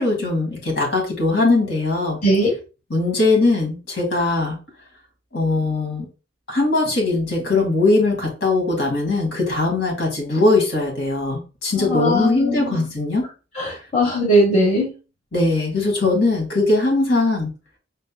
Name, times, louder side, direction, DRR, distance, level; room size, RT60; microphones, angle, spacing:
voice 1, 0.0-2.2 2.9-4.6 5.3-6.1 6.5-13.2 13.7-13.8 15.3-17.5, left 2 dB, 60° left, 1 dB, 2.1 m, -20 dB
voice 2, 2.2-2.5 11.8-12.8 13.5-14.9, equal, 35° left, -2 dB, 1.2 m, -19 dB
5.5 x 4.1 x 2.2 m, 0.32 s
head